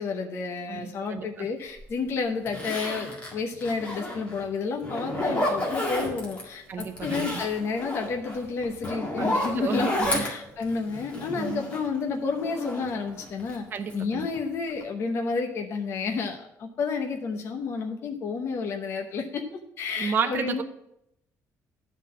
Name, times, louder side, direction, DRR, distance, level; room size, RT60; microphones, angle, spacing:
voice 1, 0.0-13.6 13.9-19.4 19.8-20.6, left 4 dB, 45° left, 3 dB, 0.9 m, -30 dB
voice 2, 0.7-1.5 6.7-7.4 9.2-9.3 9.6-10.3 11.4-11.7 13.7-14.3 20.0-20.6, right 6 dB, 35° right, 6 dB, 0.6 m, -31 dB
Zipper (clothing), 1.8-1.9 2.5-4.4 4.8-6.4 6.8-12.0 12.3-13.6 13.9-14.4 14.7-14.8, left 1 dB, 20° left, 1.9 m, -31 dB
10.5 x 4.1 x 7.4 m, 0.81 s
cardioid pair, 165°, 6 cm